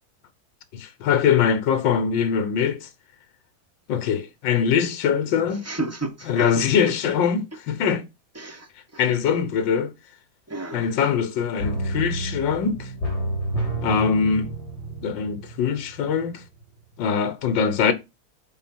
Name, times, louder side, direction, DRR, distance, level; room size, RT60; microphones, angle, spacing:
voice 1, 0.7-2.9 3.9-5.6 6.3-8.0 9.0-9.9 10.7-12.9 13.8-14.5 15.0-16.4 17.0-17.9, left 7 dB, 75° left, 1.7 m, -22 dB
voice 2, 5.6-6.9 8.3-9.0 10.5-10.9, right 2 dB, 10° right, 1.0 m, -33 dB
sound 1, 11.6-16.3 16.6-16.7, right 1 dB, 55° left, 3.9 m, -30 dB
8.2 x 4.1 x 6.1 m
omnidirectional pair, 2.1 m